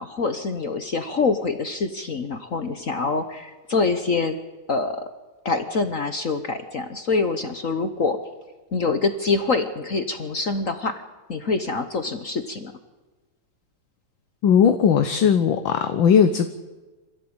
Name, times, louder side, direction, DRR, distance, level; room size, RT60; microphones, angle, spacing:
voice 1, 0.0-4.4 4.7-5.0 5.4-8.2 8.7-11.0 11.3-12.7, left 4 dB, 45° left, 9 dB, 1.3 m, -25 dB
voice 2, 14.4-16.5, left 7 dB, 65° left, 9 dB, 1.7 m, -18 dB
25.5 x 15.5 x 8.8 m, 1.2 s
omnidirectional pair, 2.4 m